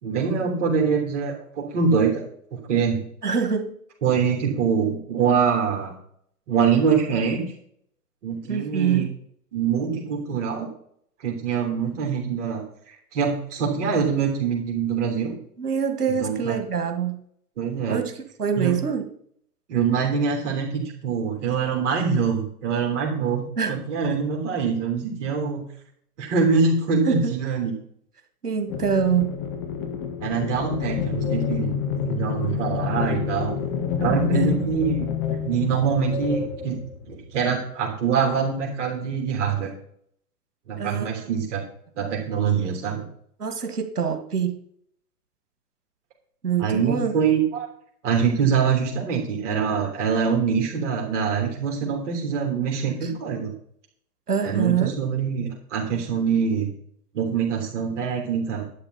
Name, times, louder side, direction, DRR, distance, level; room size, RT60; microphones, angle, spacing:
voice 1, 0.0-2.2 2.5-3.0 4.0-5.9 6.5-7.4 8.2-9.1 9.5-10.7 11.2-15.4 16.2-16.6 17.6-18.0 18.6-18.8 19.7-25.7 26.2-27.7 30.2-33.5 34.0-35.1 35.4-39.7 40.7-41.6 42.0-43.1 46.6-47.7 48.0-53.5 54.4-56.7 57.1-58.6, right 6 dB, 50° right, -1 dB, 3.3 m, -24 dB
voice 2, 3.2-3.7 8.5-9.1 15.6-17.2 17.9-19.1 23.6-23.8 27.1-27.3 28.4-29.3 34.1-34.7 40.8-41.3 43.4-44.6 46.4-47.1 53.0-53.1 54.3-54.9, right 7 dB, 80° right, 6 dB, 2.0 m, -25 dB
sound 1, 28.7-37.4, left 7 dB, 35° left, 1.8 m, -28 dB
11.5 x 9.5 x 4.1 m, 0.65 s
figure-of-eight pair, 115°, 45 cm